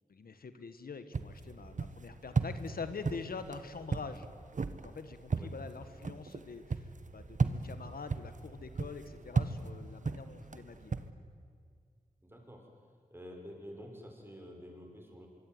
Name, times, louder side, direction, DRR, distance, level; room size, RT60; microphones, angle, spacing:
voice 1, 0.1-4.3 4.7-10.9, left 5 dB, 80° left, 10 dB, 1.6 m, -45 dB
sound 1, 1.1-11.1, right 4 dB, 55° right, 1.4 m, -36 dB
voice 2, 12.2-12.7 13.1-15.3, equal, 15° right, 1 dB, 6.9 m, -49 dB
24.5 x 24.0 x 9.7 m, 2.1 s
wide cardioid pair, 75°, 15 cm